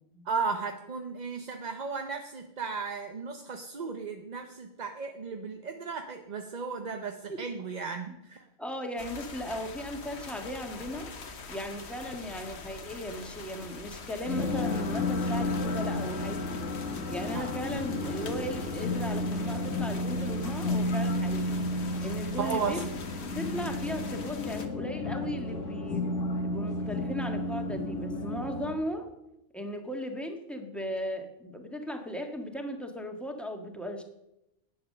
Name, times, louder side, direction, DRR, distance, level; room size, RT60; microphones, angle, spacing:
voice 1, 0.3-8.5 17.3-17.6 22.4-22.9, right 5 dB, 40° right, 5 dB, 0.8 m, -35 dB
voice 2, 8.6-11.1 11.5-16.6 17.1-21.6 22.0-22.9 23.3-26.0 26.4-29.1 29.5-34.0, equal, ahead, 4 dB, 1.5 m, -37 dB
sound 1, 9.0-24.7, left 4 dB, 65° left, 1.4 m, -44 dB
sound 2, 14.3-28.7, left 2 dB, 90° left, 2.2 m, -32 dB
11.5 x 9.2 x 6.6 m, 0.87 s
omnidirectional pair, 1.2 m